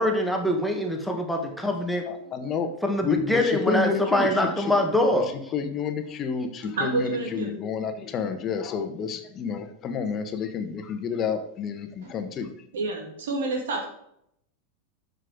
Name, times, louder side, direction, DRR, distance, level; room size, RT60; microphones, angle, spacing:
voice 1, 0.0-2.0 2.8-5.3, left 1 dB, ahead, 2 dB, 1.7 m, -24 dB
voice 2, 2.1-2.7 3.0-4.7 5.1-12.5, left 6 dB, 35° left, 8 dB, 1.2 m, -30 dB
voice 3, 6.8-7.5 12.0-12.1 12.7-13.9, right 3 dB, 85° right, 2 dB, 2.8 m, -28 dB
7.5 x 6.4 x 5.1 m, 0.73 s
supercardioid pair, 125°, 0 cm